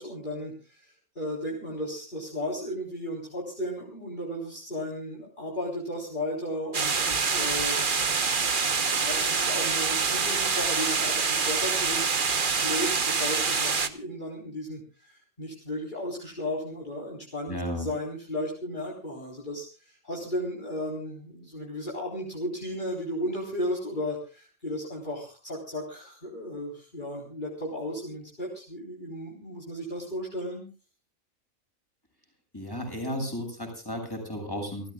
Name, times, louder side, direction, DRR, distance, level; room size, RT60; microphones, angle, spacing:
voice 1, 0.0-8.6 8.8-30.6, equal, 35° left, -2 dB, 4.2 m, -35 dB
sound 1, 6.7-13.9, right 5 dB, 40° right, 1.3 m, -26 dB
voice 2, 17.5-17.9 32.5-34.9, equal, 15° left, 3 dB, 6.7 m, -34 dB
29.0 x 14.0 x 2.4 m, 0.35 s
omnidirectional pair, 1.3 m